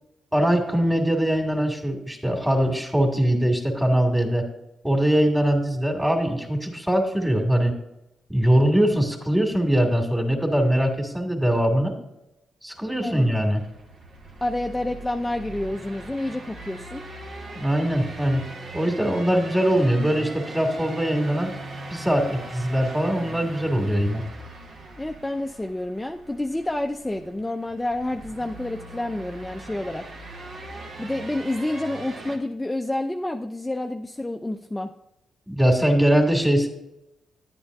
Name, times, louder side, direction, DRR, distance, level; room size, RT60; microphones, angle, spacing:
voice 1, 0.3-4.4 4.8-7.7 8.3-11.9 12.6-13.6 17.5-18.4 18.7-21.5 21.9-24.2 35.5-36.7, equal, 10° right, 2 dB, 2.3 m, -22 dB
sound 1, 12.7-32.4, right 2 dB, 65° right, 1.4 m, -40 dB
voice 2, 14.4-17.0 25.0-30.1 31.0-34.9, left 1 dB, 15° left, 3 dB, 0.5 m, -29 dB
10.5 x 8.6 x 2.6 m, 0.89 s
supercardioid pair, 50°, 0 cm